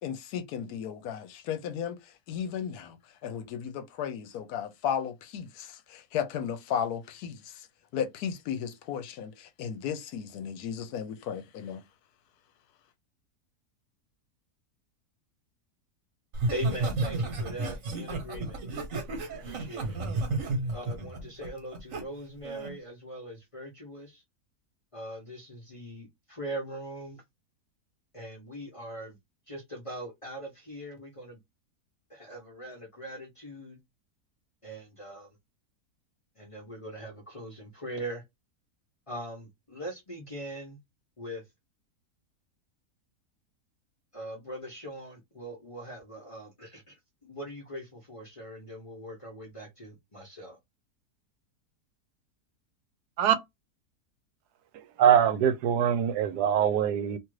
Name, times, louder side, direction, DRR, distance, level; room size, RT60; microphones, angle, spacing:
voice 1, 0.0-3.0 3.2-7.7 7.9-11.8, left 8 dB, 75° left, 1.1 m, -35 dB
Laughter, 16.3-22.0 22.4-22.8, right 2 dB, 60° right, 1.3 m, -32 dB
voice 2, 16.5-18.6 19.4-20.0 20.7-24.2 24.9-27.2 28.1-29.2 29.5-31.4 32.1-33.8 34.6-35.3 36.4-38.2 39.1-40.8 41.2-41.4 44.1-50.6, right 1 dB, 35° left, 0.5 m, -41 dB
voice 3, 55.0-57.2, right 9 dB, 80° right, 1.1 m, -23 dB
2.8 x 2.4 x 3.0 m
omnidirectional pair, 1.7 m